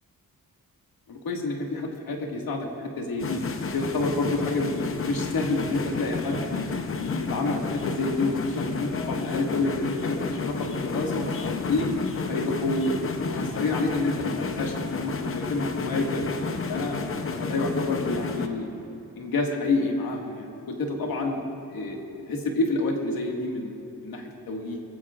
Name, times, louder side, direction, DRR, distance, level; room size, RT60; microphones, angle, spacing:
voice 1, 1.1-3.4 3.7-6.7 7.0-11.9 12.3-12.9 13.2-16.2 16.5-17.0 17.4-18.7 19.2-21.4 21.7-22.0 22.3-24.8, left 2 dB, 75° left, 1 dB, 1.9 m, -28 dB
sound 1, 3.2-18.5, left 4 dB, 40° left, 0.7 m, -31 dB
21.5 x 15.5 x 2.5 m, 2.9 s
wide cardioid pair, 175°, 35 cm